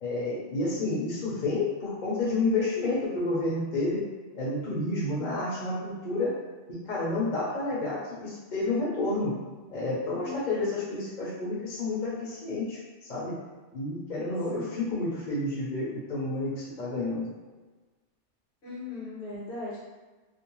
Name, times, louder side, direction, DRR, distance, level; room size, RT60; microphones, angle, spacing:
voice 1, 0.0-4.1 4.3-6.4 6.8-9.3 9.7-13.4 13.7-17.2, left 2 dB, 50° left, -7 dB, 0.8 m, -30 dB
voice 2, 10.2-10.7 14.5-14.8 18.6-19.8, left 3 dB, 65° left, -7 dB, 1.2 m, -38 dB
2.6 x 2.0 x 2.9 m, 1.3 s
omnidirectional pair, 1.2 m